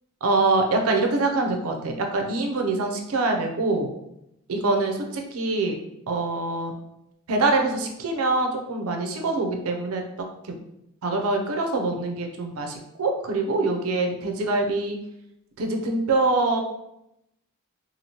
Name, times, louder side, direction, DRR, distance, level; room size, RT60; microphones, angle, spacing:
voice 1, 0.2-3.9 4.5-5.8 6.1-6.7 7.3-10.0 11.0-15.0 15.6-16.6, right 2 dB, 90° right, 3 dB, 0.5 m, -24 dB
2.8 x 2.5 x 2.9 m, 0.83 s
head